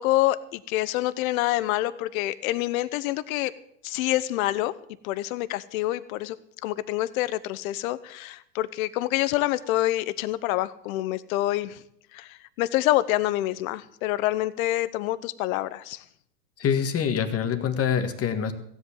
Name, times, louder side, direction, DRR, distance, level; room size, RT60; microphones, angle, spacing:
voice 1, 0.0-3.5 3.8-4.7 5.0-6.4 6.6-11.8 12.1-16.0, left 16 dB, 65° left, 16 dB, 1.0 m, -27 dB
voice 2, 16.6-18.5, left 7 dB, 30° left, 8 dB, 1.7 m, -25 dB
16.0 x 8.1 x 7.3 m, 0.69 s
hypercardioid pair, 100°, 46 cm